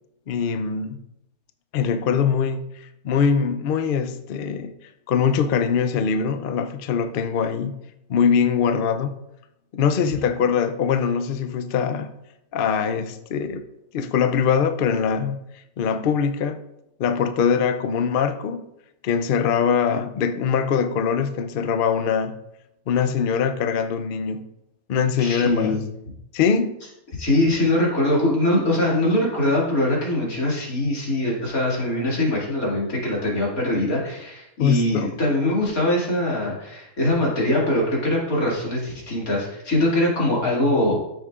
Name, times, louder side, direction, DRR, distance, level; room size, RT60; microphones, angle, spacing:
voice 1, 0.3-1.0 1.7-4.7 5.1-7.7 8.1-9.1 9.7-12.1 12.5-13.6 13.9-15.4 15.8-16.6 17.0-18.7 19.0-22.3 22.9-24.5 24.9-25.8 26.3-26.8 27.6-27.7 34.6-35.1, left 6 dB, 85° left, 9 dB, 0.4 m, -22 dB
voice 2, 25.2-25.8 27.2-41.1, left 1 dB, 65° left, -4 dB, 2.8 m, -22 dB
13.5 x 6.4 x 2.4 m, 0.84 s
omnidirectional pair, 1.7 m